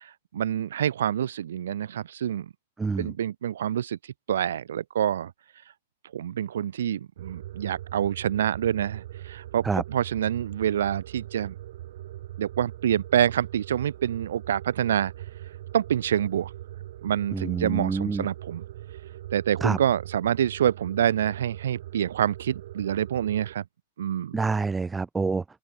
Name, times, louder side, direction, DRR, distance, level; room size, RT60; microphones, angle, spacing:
voice 1, 0.0-2.5 3.0-4.0 4.3-5.3 6.1-11.5 12.4-15.1 15.7-16.5 17.0-18.6 19.3-23.6 24.0-24.4, right 10 dB, 80° right, 4.0 m, -27 dB
voice 2, 2.8-3.1 9.6-9.8 17.3-18.3 19.6-19.8 24.3-25.4, right 4 dB, 5° right, 1.5 m, -27 dB
sound 1, 7.2-23.5, right 13 dB, 55° right, 3.7 m, -41 dB
open air
supercardioid pair, 170°, 0 cm